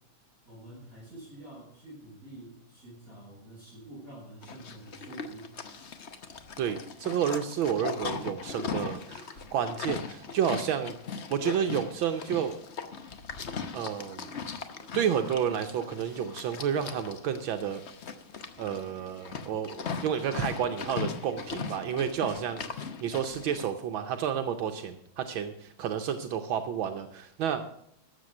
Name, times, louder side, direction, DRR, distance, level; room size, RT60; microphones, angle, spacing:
voice 1, 0.4-5.5, right 1 dB, 30° right, -7 dB, 6.8 m, -47 dB
Livestock farm animals working animals, 4.4-23.7, left 5 dB, 45° left, 0.9 m, -39 dB
voice 2, 6.6-11.0 11.3-12.6 13.7-14.3 14.9-17.8 18.6-27.6, right 8 dB, 75° right, 7 dB, 1.5 m, -30 dB
13.0 x 7.8 x 6.4 m, 0.73 s
omnidirectional pair, 2.3 m